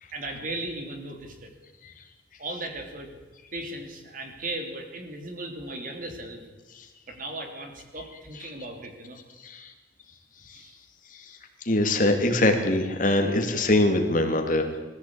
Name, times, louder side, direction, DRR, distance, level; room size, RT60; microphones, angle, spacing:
voice 1, 0.1-1.5 2.4-3.2 3.5-6.4 7.1-9.2 10.5-10.8, right 2 dB, 50° right, 4 dB, 3.1 m, -37 dB
voice 2, 11.6-14.7, left 1 dB, 50° left, 4 dB, 2.5 m, -22 dB
21.0 x 14.5 x 8.7 m, 1.3 s
head